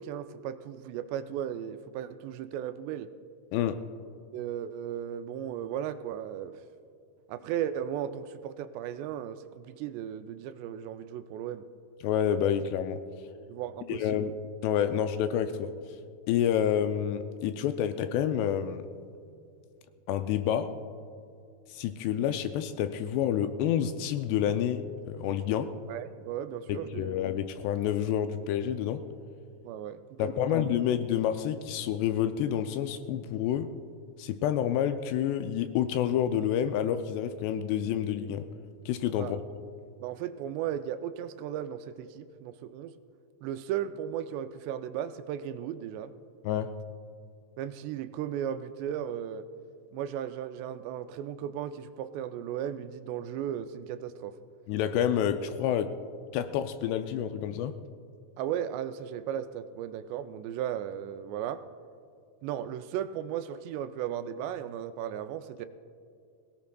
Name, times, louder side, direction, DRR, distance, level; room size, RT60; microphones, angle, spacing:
voice 1, 0.0-3.1 4.3-6.6 7.3-11.6 13.5-14.0 25.9-27.1 29.6-30.6 39.2-39.4 40.0-42.9 43.4-46.1 47.6-49.5 49.9-54.4 58.4-61.6 62.4-65.7, right 10 dB, 85° right, 10 dB, 2.6 m, -36 dB
voice 2, 12.0-13.0 13.9-14.4 14.6-15.7 16.3-18.9 20.1-20.7 21.7-25.7 26.7-29.0 30.2-33.7 34.2-38.5 38.9-39.4 46.4-46.7 54.7-56.0 56.3-57.8, left 9 dB, 85° left, 9 dB, 2.5 m, -28 dB
22.0 x 17.5 x 2.3 m, 2.4 s
omnidirectional pair, 5.0 m